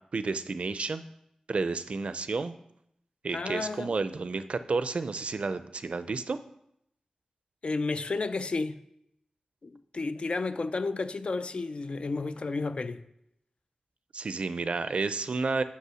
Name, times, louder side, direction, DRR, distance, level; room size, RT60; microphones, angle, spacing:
voice 1, 0.1-1.0 1.5-2.6 3.2-6.4 14.1-15.6, right 4 dB, 65° right, 0.5 m, -31 dB
voice 2, 3.3-3.9 7.6-8.8 9.6-13.0, left 3 dB, 55° left, 0.5 m, -32 dB
6.3 x 5.5 x 6.2 m
wide cardioid pair, 70°, 2 cm